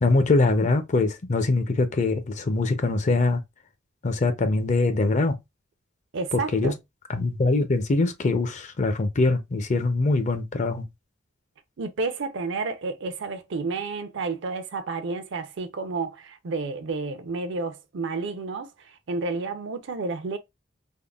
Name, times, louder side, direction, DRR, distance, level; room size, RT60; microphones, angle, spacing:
voice 1, 0.0-3.4 4.0-5.4 6.3-6.7 7.1-10.8, left 3 dB, 40° left, 0.5 m, -23 dB
voice 2, 6.1-6.7 11.8-20.4, right 3 dB, 65° right, 0.5 m, -31 dB
3.5 x 2.1 x 2.3 m
head